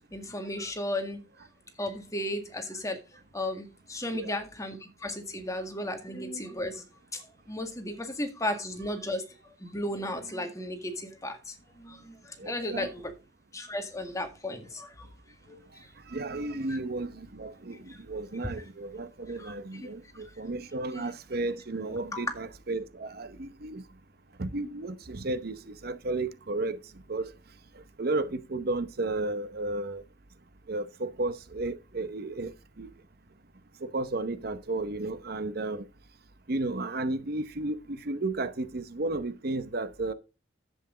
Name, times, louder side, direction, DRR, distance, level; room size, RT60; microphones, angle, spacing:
voice 1, 0.1-1.2 1.8-3.0 3.3-6.8 7.1-7.2 7.5-9.3 9.6-13.1 13.5-15.1 15.5-15.7 16.1-16.2 16.7-16.8 17.9-18.0 19.4-19.9 20.9-21.0 22.1-22.3, left 1 dB, 20° left, 1.9 m, -35 dB
voice 2, 12.4-12.9 16.1-23.8 24.4-26.8 27.1-27.3 28.0-30.0 30.7-32.9 33.8-35.9 36.5-40.1, right 2 dB, 55° right, 0.8 m, -33 dB
10.5 x 8.3 x 3.8 m
head